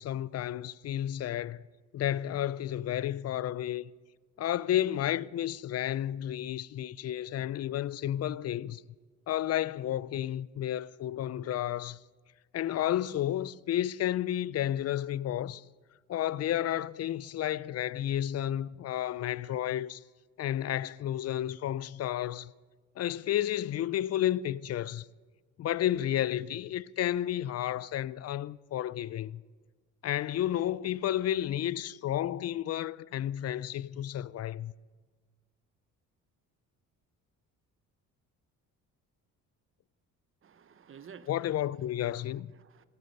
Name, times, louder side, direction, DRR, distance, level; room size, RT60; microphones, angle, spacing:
voice 1, 0.0-1.6 1.9-3.9 4.4-8.8 9.3-12.0 12.5-15.6 16.1-20.0 20.4-22.5 23.0-25.1 25.6-29.4 30.0-34.7 41.3-42.5, left 12 dB, 45° left, 0.4 m, -31 dB
voice 2, 40.4-41.6 42.1-42.9, right 7 dB, 35° right, 0.8 m, -53 dB
17.0 x 8.1 x 5.3 m
supercardioid pair, 70°, 36 cm